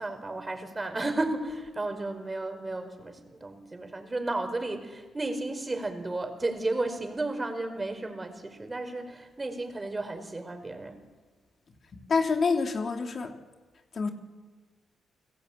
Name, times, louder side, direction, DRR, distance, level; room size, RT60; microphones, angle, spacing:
voice 1, 0.0-11.0, right 2 dB, 25° right, 8 dB, 5.0 m, -33 dB
voice 2, 11.9-13.3 13.9-14.1, left 4 dB, 55° left, 5 dB, 2.9 m, -27 dB
29.0 x 19.5 x 8.8 m, 1.3 s
supercardioid pair, 55°, 0 cm